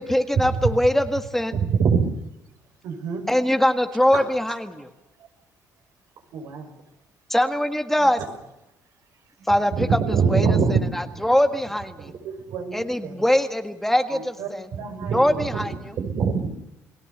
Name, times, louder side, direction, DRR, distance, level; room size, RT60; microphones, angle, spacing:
voice 1, 0.0-1.5 3.3-4.9 7.3-8.2 9.5-10.0 10.3-12.1 12.7-14.6 15.1-16.0, left 1 dB, 5° left, 7 dB, 1.6 m, -22 dB
voice 2, 1.5-2.0 9.7-10.8 15.1-15.7 16.0-16.5, right 6 dB, 65° right, 7 dB, 4.4 m, -21 dB
voice 3, 2.8-3.3 4.1-4.2 6.3-6.7 8.2-8.3 12.2-13.2 14.1-14.5 14.8-15.6, right 6 dB, 80° right, 4 dB, 5.4 m, -35 dB
29.5 x 19.0 x 6.8 m, 0.90 s
cardioid pair, 100°, 6 cm